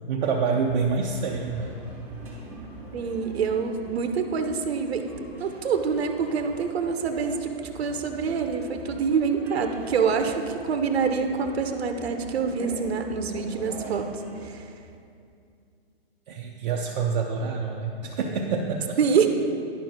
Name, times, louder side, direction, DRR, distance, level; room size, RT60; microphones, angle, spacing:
voice 1, 0.1-1.8 16.3-19.0, right 5 dB, 45° right, 0 dB, 0.6 m, -27 dB
sound 1, 0.6-14.5, right 2 dB, 5° right, 1.0 m, -43 dB
voice 2, 2.9-5.1 5.3-7.5 7.8-14.1 14.4-14.6 19.0-19.3, right 6 dB, 85° right, 6 dB, 0.9 m, -26 dB
11.0 x 4.5 x 5.1 m, 2.4 s
hypercardioid pair, 165°, 31 cm